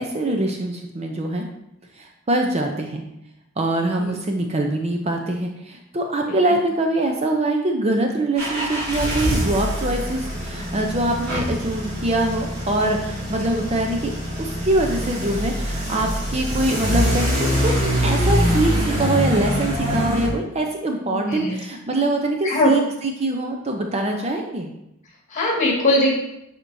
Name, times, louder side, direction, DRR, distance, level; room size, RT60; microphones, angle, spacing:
voice 1, 0.0-1.4 2.0-3.0 3.6-14.1 14.4-17.7 18.0-22.8 23.2-24.7, right 2 dB, 30° right, 2 dB, 0.6 m, -23 dB
sound 1, 8.4-20.3, equal, 45° right, 2.1 m, -24 dB
voice 2, 21.1-21.6 22.4-22.8 25.3-26.1, left 1 dB, 35° left, -3 dB, 1.9 m, -20 dB
11.0 x 4.4 x 2.7 m, 0.83 s
head